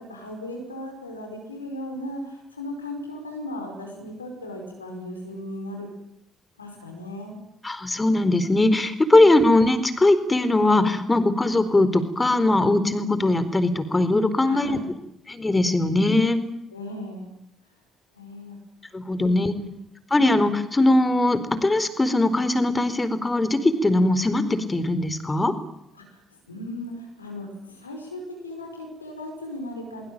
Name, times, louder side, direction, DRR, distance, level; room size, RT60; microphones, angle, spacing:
voice 1, 0.0-5.9 6.6-7.3 9.1-9.3 14.4-14.9 16.7-17.3 18.1-18.6 19.2-19.7 25.9-30.1, left 1 dB, 90° left, 3 dB, 5.1 m, -37 dB
voice 2, 7.6-14.8 15.3-16.4 18.9-19.5 20.1-25.5, left 2 dB, 20° left, 13 dB, 4.3 m, -20 dB
24.0 x 24.0 x 9.0 m, 0.79 s
figure-of-eight pair, 45°, 0 cm